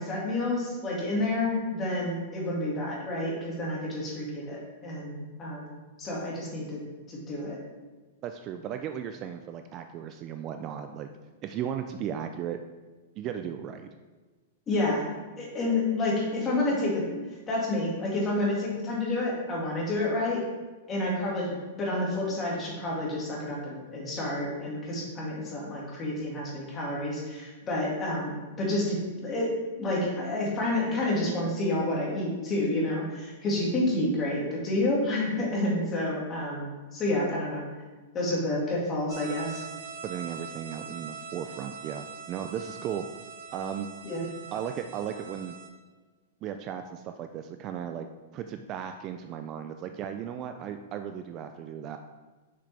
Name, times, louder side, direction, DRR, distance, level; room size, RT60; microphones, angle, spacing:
voice 1, 0.0-5.7 6.0-6.8 7.1-7.6 14.7-15.1 15.4-17.0 17.5-20.4 20.9-29.5 29.8-37.6 38.1-39.6 44.0-44.2, left 1 dB, 20° left, -4 dB, 2.0 m, -29 dB
voice 2, 8.2-11.1 11.4-12.6 13.2-13.9 40.0-43.1 43.5-43.9 44.5-45.6 46.4-48.1 48.3-52.0, right 9 dB, 30° right, 7 dB, 0.3 m, -36 dB
sound 1, 39.1-45.7, right 6 dB, 60° right, 1.9 m, -43 dB
6.3 x 5.9 x 3.4 m, 1.3 s
hypercardioid pair, 150°, 0 cm